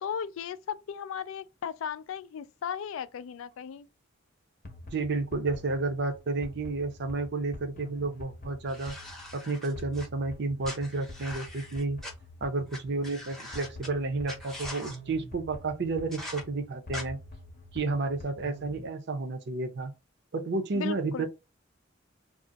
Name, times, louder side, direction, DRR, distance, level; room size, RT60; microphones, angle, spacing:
voice 1, 0.0-3.9 20.7-21.3, left 7 dB, 80° left, 0.3 m, -36 dB
sound 1, 4.6-18.9, left 1 dB, 45° left, 0.7 m, -47 dB
voice 2, 4.9-9.0 9.3-12.0 12.4-17.2 17.7-19.9 20.3-21.3, right 3 dB, 55° right, 0.5 m, -31 dB
sound 2, 8.7-10.1 10.6-12.1 12.7-12.8 13.0-13.9 14.3-15.0 16.1-16.4 16.9-17.0, left 1 dB, ahead, 0.7 m, -42 dB
2.5 x 2.0 x 3.9 m
head